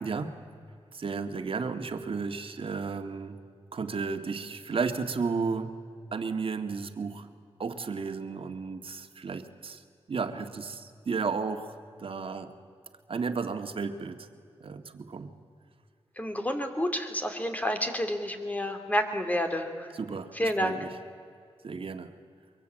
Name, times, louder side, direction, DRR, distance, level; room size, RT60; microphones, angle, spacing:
voice 1, 0.0-0.4 0.9-3.4 3.7-5.8 6.1-7.3 7.6-9.8 10.1-11.7 12.0-12.5 13.1-14.3 14.6-15.3 19.9-20.9 21.6-22.1, right 5 dB, 60° right, 7 dB, 1.8 m, -33 dB
voice 2, 16.2-19.9 20.3-20.8, equal, 15° left, 6 dB, 3.0 m, -29 dB
24.5 x 22.5 x 8.8 m, 2.3 s
wide cardioid pair, 80°, 10 cm